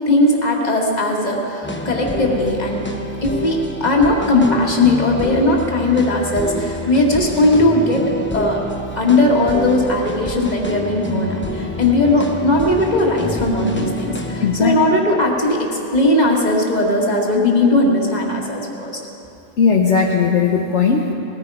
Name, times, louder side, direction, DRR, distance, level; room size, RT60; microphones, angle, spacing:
voice 1, 0.1-2.8 3.2-8.0 8.3-8.6 9.0-19.0, left 2 dB, 35° left, -1 dB, 2.0 m, -18 dB
sound 1, 1.6-16.9, left 1 dB, 10° left, 0.9 m, -29 dB
voice 2, 14.4-14.8 19.6-21.1, left 5 dB, 65° left, 0 dB, 1.2 m, -17 dB
19.0 x 15.0 x 4.8 m, 2.9 s
omnidirectional pair, 1.3 m